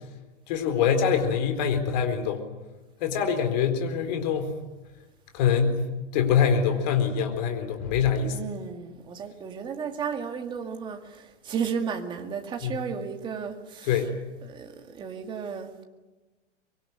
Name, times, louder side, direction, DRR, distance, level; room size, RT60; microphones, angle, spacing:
voice 1, 0.5-2.4 3.0-4.5 5.3-5.8 6.1-8.4 12.6-12.8 13.8-14.1, left 7 dB, 35° left, 4.2 m, -24 dB
voice 2, 8.2-14.0 14.4-15.8, right 6 dB, 15° right, 2.1 m, -34 dB
24.5 x 23.5 x 9.7 m
hypercardioid pair, 165°, 37 cm